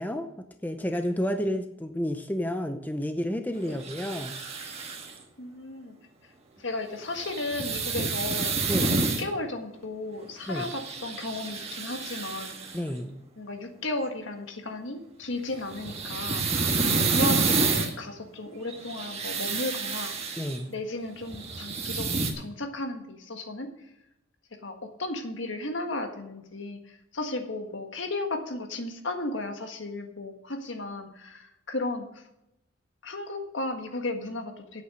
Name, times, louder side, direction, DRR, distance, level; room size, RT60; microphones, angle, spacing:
voice 1, 0.0-4.3 8.0-8.1 8.7-9.0 10.5-10.7 12.7-13.2 20.4-20.7, equal, 10° left, 7 dB, 0.6 m, -31 dB
sound 1, 3.8-5.1 7.1-9.2 10.4-12.8 15.5-17.9 18.7-20.6 21.2-22.3, right 4 dB, 30° right, 1.6 m, -29 dB
voice 2, 5.4-5.9 6.6-8.5 8.8-12.5 13.4-16.7 17.1-20.2 20.7-23.7 24.6-32.2 33.0-34.8, left 2 dB, 65° left, 5 dB, 1.6 m, -34 dB
9.6 x 8.5 x 6.3 m, 0.87 s
head